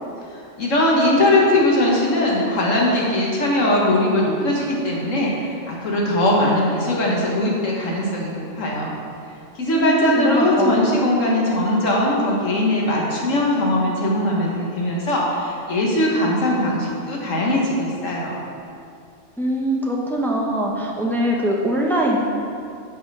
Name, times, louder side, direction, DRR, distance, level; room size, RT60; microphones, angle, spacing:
voice 1, 0.3-9.0 9.5-18.4, left 1 dB, 75° left, -3 dB, 1.7 m, -20 dB
voice 2, 9.7-10.8 19.4-22.2, right 1 dB, ahead, -2 dB, 0.6 m, -22 dB
6.5 x 5.6 x 5.5 m, 2.5 s
omnidirectional pair, 1.3 m